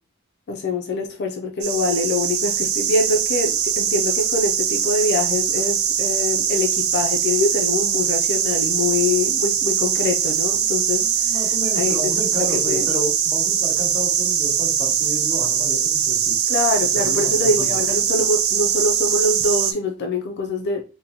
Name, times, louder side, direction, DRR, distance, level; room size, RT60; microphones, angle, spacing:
voice 1, 0.5-11.4 11.7-12.1 12.5-12.9 16.5-20.8, left 3 dB, 55° left, 0.4 m, -24 dB
sound 1, 1.6-19.7, right 8 dB, 85° right, 0.5 m, -21 dB
voice 2, 11.0-16.3 17.0-17.7, equal, ahead, 1.9 m, -31 dB
4.1 x 2.1 x 2.7 m
head